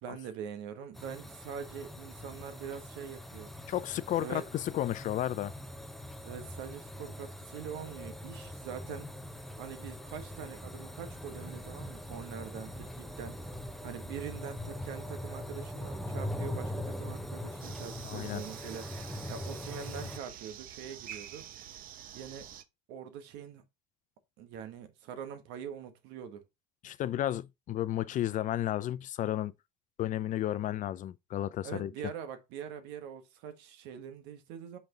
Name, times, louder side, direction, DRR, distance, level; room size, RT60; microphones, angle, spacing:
voice 1, 0.0-3.5 4.2-4.4 6.2-9.1 9.6-13.4 13.8-18.9 19.3-21.4 22.1-22.5 22.9-23.6 24.4-26.4 31.6-34.8, right 8 dB, 65° right, 1.6 m, -43 dB
sound 1, 0.9-20.2, left 1 dB, ahead, 0.9 m, -42 dB
voice 2, 3.7-5.5 18.0-18.4 26.8-29.5 30.0-31.9, left 12 dB, 45° left, 0.5 m, -32 dB
sound 2, 17.6-22.6, right 10 dB, 50° right, 0.9 m, -47 dB
5.9 x 5.2 x 3.9 m
hypercardioid pair, 85°, 19 cm